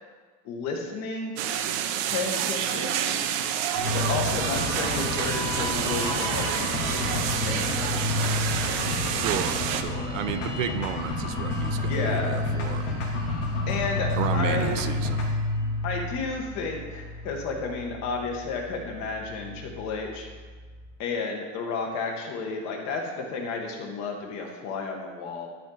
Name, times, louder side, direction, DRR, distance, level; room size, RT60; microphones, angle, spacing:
voice 1, 0.4-1.4 2.1-3.0 3.9-8.8 11.8-12.3 13.7-14.8 15.8-20.3 21.0-25.5, left 4 dB, 45° left, 1 dB, 1.5 m, -32 dB
sound 1, 1.4-9.8, right 9 dB, 45° right, 0.6 m, -28 dB
sound 2, 3.8-20.9, left 2 dB, 80° left, 2.5 m, -30 dB
voice 2, 9.1-12.9 14.2-15.3, right 10 dB, 80° right, 10 dB, 0.7 m, -32 dB
12.0 x 4.4 x 4.0 m, 1.4 s
supercardioid pair, 150°, 37 cm